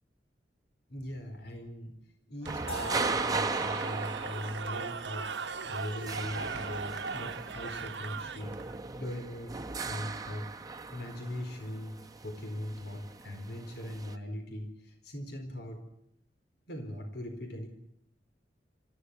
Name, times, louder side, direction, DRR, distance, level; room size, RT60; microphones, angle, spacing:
voice 1, 0.9-2.0 2.3-8.5 8.9-9.6 9.8-10.5 10.9-15.8 16.7-17.7, left 1 dB, 65° left, 5 dB, 4.3 m, -40 dB
Cheering / Crowd, 2.4-8.8, right 5 dB, 75° right, 1.1 m, -39 dB
sound 1, 2.5-14.2, right 4 dB, 20° right, 1.0 m, -38 dB
sound 2, 2.7-6.6, left 2 dB, 35° left, 4.5 m, -47 dB
25.0 x 15.0 x 9.8 m, 0.76 s
head